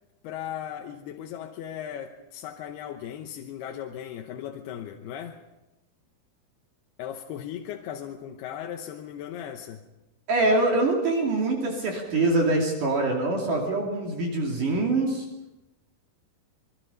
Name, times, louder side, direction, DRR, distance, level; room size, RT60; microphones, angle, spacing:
voice 1, 0.2-5.4 7.0-9.8, left 10 dB, 85° left, 3.0 m, -37 dB
voice 2, 10.3-15.3, right 2 dB, 55° right, 4.0 m, -24 dB
27.0 x 22.0 x 5.4 m
omnidirectional pair, 4.5 m